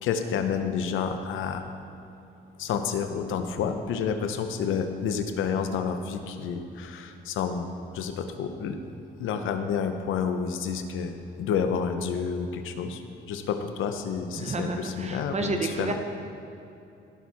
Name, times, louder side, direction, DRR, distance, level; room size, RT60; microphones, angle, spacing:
voice 1, 0.0-1.6 2.6-7.7 7.9-8.8 9.2-13.0 13.3-15.9, left 6 dB, 85° left, 7 dB, 0.9 m, -29 dB
voice 2, 14.4-15.9, right 3 dB, 35° right, 4 dB, 0.9 m, -30 dB
17.5 x 6.4 x 4.2 m, 2.8 s
cardioid pair, 90°, 20 cm